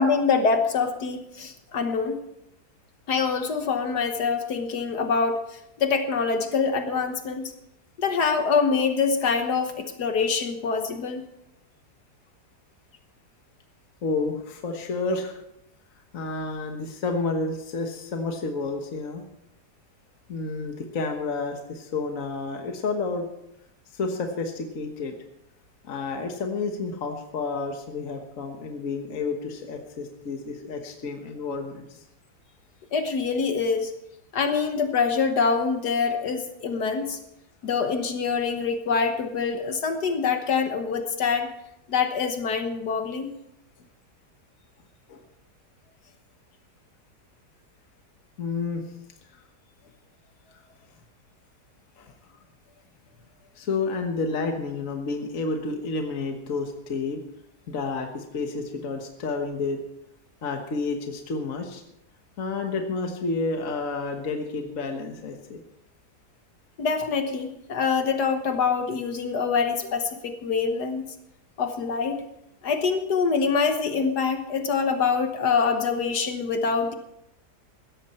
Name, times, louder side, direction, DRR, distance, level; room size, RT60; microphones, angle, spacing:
voice 1, 0.0-2.2 3.1-7.5 8.0-11.2 32.9-33.9 34.3-37.2 37.6-41.5 41.9-43.3 66.8-71.0 71.6-72.2 72.6-76.9, left 5 dB, 70° left, 6 dB, 1.7 m, -25 dB
voice 2, 14.0-15.4 16.1-19.2 20.3-23.3 23.9-25.1 25.8-32.0 45.1-45.2 48.4-48.8 52.0-52.1 53.6-57.2 57.7-59.8 60.4-61.8 62.4-65.6, left 3 dB, 50° left, 4 dB, 1.7 m, -30 dB
16.5 x 13.5 x 4.3 m, 0.81 s
omnidirectional pair, 1.8 m